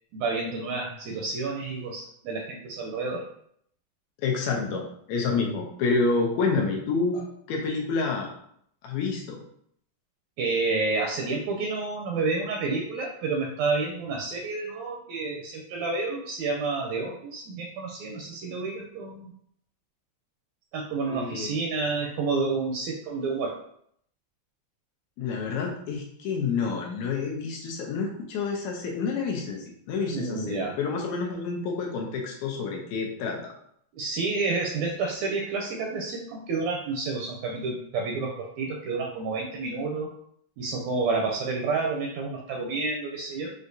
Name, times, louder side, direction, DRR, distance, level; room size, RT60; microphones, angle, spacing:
voice 1, 0.1-3.2 5.3-5.5 10.4-19.3 20.7-23.5 30.1-30.7 33.9-40.1 40.6-43.5, right 3 dB, 80° right, 0 dB, 1.7 m, -29 dB
voice 2, 4.2-8.3 8.8-9.4 21.1-21.5 25.2-33.5, left 4 dB, 75° left, 1 dB, 1.8 m, -28 dB
6.3 x 2.4 x 2.6 m, 0.68 s
omnidirectional pair, 3.5 m